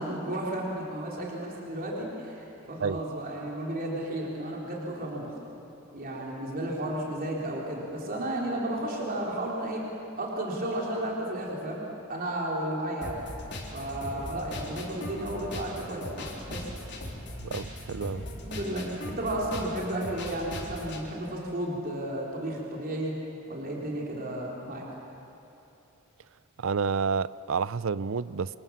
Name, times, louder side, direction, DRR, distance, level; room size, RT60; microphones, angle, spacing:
voice 1, 0.0-5.4 5.9-9.8 10.2-11.8 12.1-13.1 13.7-16.7 18.4-23.2 23.5-24.8, right 1 dB, 45° right, -3 dB, 3.8 m, -33 dB
sound 1, 13.0-21.0, left 1 dB, 60° left, 4.0 m, -39 dB
voice 2, 17.4-18.2 26.6-28.5, right 5 dB, 70° right, 18 dB, 0.5 m, -29 dB
28.5 x 25.5 x 7.3 m, 3.0 s
head